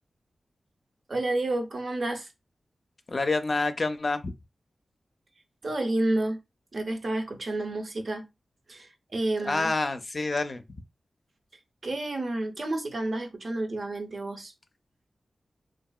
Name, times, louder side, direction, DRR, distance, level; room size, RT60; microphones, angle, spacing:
voice 1, 1.1-2.3 5.6-6.4 6.7-8.3 8.7-9.7 11.8-14.5, right 2 dB, 60° right, 0.7 m, -30 dB
voice 2, 3.1-4.3 9.4-10.8, left 3 dB, 55° left, 0.4 m, -28 dB
2.8 x 2.5 x 2.3 m
cardioid pair, 45°, 0 cm